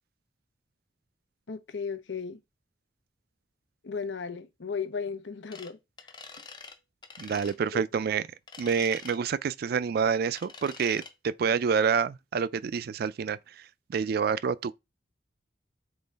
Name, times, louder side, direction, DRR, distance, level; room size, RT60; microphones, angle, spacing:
voice 1, 1.5-2.4 3.8-5.8 7.7-7.8, left 5 dB, 85° left, 0.8 m, -35 dB
sound 1, 5.5-5.7 6.0-6.8 7.0-7.6 8.5-9.2 10.4-11.1, left 4 dB, 25° left, 0.6 m, -45 dB
voice 2, 7.2-8.2 8.6-13.4 13.9-14.7, right 6 dB, 60° right, 0.3 m, -27 dB
3.8 x 3.1 x 4.0 m
head